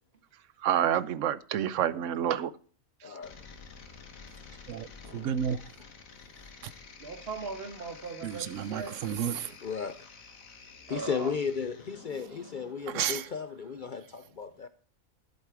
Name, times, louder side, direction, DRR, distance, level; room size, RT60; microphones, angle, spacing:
voice 1, 0.3-2.5 3.0-3.2 4.7-5.6 6.6-6.7 8.2-9.6 12.9-13.3, right 9 dB, 70° right, 1.0 m, -30 dB
voice 2, 3.0-3.3 9.6-10.0 10.9-14.7, left 6 dB, 55° left, 0.5 m, -34 dB
sound 1, 3.2-12.7, left 5 dB, 80° left, 1.8 m, -50 dB
voice 3, 7.0-9.0 10.9-11.3, right 4 dB, 50° right, 1.5 m, -39 dB
11.0 x 8.2 x 4.7 m
omnidirectional pair, 1.4 m